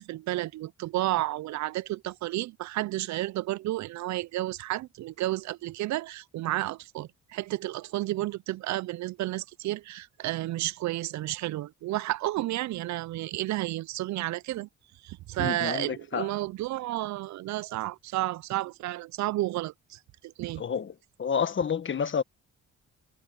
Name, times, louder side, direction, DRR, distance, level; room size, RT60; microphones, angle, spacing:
voice 1, 0.0-14.7 15.0-20.6, right 16 dB, 65° right, 0.5 m, -31 dB
voice 2, 15.4-16.3 20.6-20.9 21.2-22.2, left 7 dB, 40° left, 1.5 m, -29 dB
cardioid pair, 90°, 30 cm